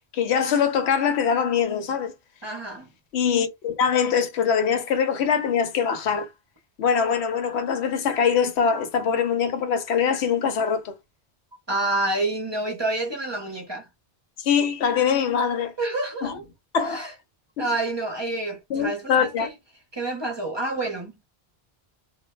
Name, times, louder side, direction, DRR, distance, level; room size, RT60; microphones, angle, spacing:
voice 1, 0.1-2.1 3.1-6.3 6.8-10.9 14.4-15.7 16.2-16.3 16.7-17.1 17.6-17.7 18.7-19.5, left 7 dB, 90° left, 0.9 m, -23 dB
voice 2, 2.4-2.9 11.7-13.9 15.8-16.5 16.8-17.1 17.6-19.5 19.9-21.2, right 2 dB, 30° right, 0.6 m, -28 dB
2.1 x 2.1 x 3.0 m
omnidirectional pair, 1.1 m